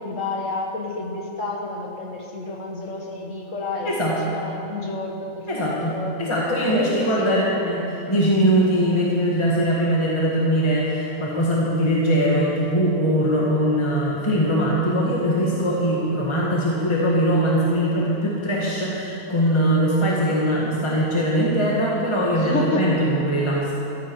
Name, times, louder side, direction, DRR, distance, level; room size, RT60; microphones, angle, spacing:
voice 1, 0.0-6.1 6.6-7.5 22.3-22.9, left 3 dB, 60° left, 1 dB, 1.7 m, -30 dB
voice 2, 3.9-4.2 5.5-23.7, equal, 20° left, -5 dB, 1.8 m, -21 dB
15.0 x 14.5 x 4.8 m, 2.8 s
omnidirectional pair, 1.6 m